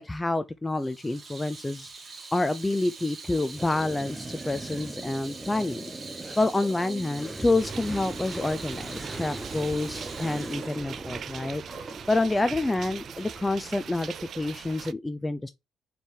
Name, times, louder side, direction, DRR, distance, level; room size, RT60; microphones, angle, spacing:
voice 1, 0.0-1.9 2.3-5.9 6.4-11.6 12.1-15.5, left 2 dB, 15° left, 0.5 m, -28 dB
Water tap faucet / Sink (filling or washing), 0.7-12.1, right 3 dB, 40° right, 1.8 m, -43 dB
sound 1, 3.5-13.9, right 2 dB, 15° right, 0.8 m, -40 dB
sound 2, 7.6-14.9, right 8 dB, 60° right, 0.4 m, -42 dB
5.0 x 4.5 x 4.8 m
cardioid pair, 90°, 0 cm